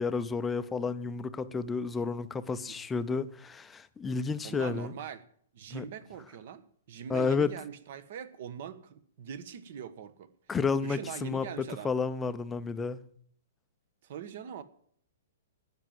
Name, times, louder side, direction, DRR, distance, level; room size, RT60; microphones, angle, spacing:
voice 1, 0.0-4.9 5.7-5.8 7.1-7.5 10.5-13.0, left 4 dB, 10° left, 12 dB, 0.6 m, -31 dB
voice 2, 4.4-5.2 5.5-10.3 10.8-11.9 14.0-14.6, right 8 dB, 50° right, 14 dB, 1.3 m, -42 dB
12.5 x 9.1 x 7.9 m, 0.63 s
hypercardioid pair, 165°, 0 cm